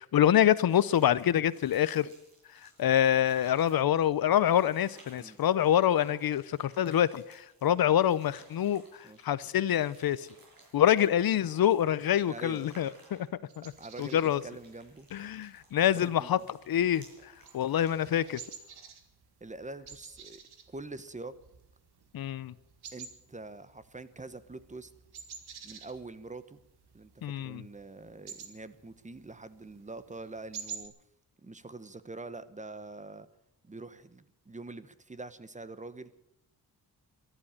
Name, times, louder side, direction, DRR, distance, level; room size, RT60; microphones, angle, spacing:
voice 1, 0.1-2.1 2.6-10.3 10.7-13.3 13.6-13.7 14.0-14.4 15.1-16.4 16.7-18.4 22.1-22.5 27.2-27.6, left 10 dB, 70° left, 0.6 m, -26 dB
sound 1, 0.7-18.8, right 2 dB, 65° right, 6.8 m, -59 dB
voice 2, 12.3-12.8 13.8-15.1 16.0-16.4 19.4-20.4 20.7-21.3 22.9-24.9 25.6-26.6 26.9-30.9 31.4-33.3 33.6-36.1, right 3 dB, 20° right, 0.9 m, -45 dB
sound 2, 13.5-30.9, right 7 dB, 85° right, 1.9 m, -50 dB
14.0 x 11.5 x 8.8 m
wide cardioid pair, 110°, 38 cm